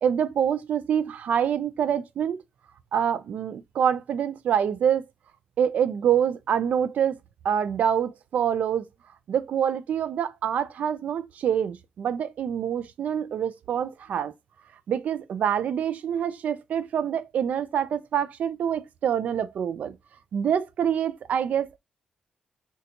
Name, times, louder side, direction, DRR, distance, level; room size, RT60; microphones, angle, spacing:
voice 1, 0.0-2.4 2.9-5.0 5.6-7.2 7.4-8.8 9.3-14.3 14.9-20.0 20.3-21.8, right 8 dB, 70° right, 0.3 m, -26 dB
2.8 x 2.2 x 3.8 m
cardioid pair, 115°, 3 cm